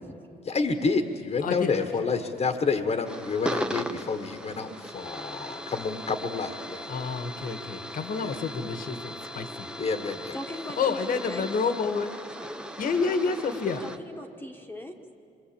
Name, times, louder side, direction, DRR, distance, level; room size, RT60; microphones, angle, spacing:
voice 1, 0.4-6.9 8.2-8.4 9.8-10.4, left 4 dB, 40° left, 7 dB, 1.4 m, -29 dB
voice 2, 1.4-1.8 6.9-9.7 10.8-12.2 12.8-13.9, left 5 dB, 55° left, 8 dB, 1.6 m, -29 dB
sound 1, 3.1-14.0, equal, 5° right, 1.0 m, -38 dB
voice 3, 10.3-11.5 12.4-12.6 13.8-15.0, left 1 dB, 10° left, 3 dB, 1.5 m, -40 dB
26.5 x 22.5 x 8.7 m, 2.5 s
cardioid pair, 105°, 17 cm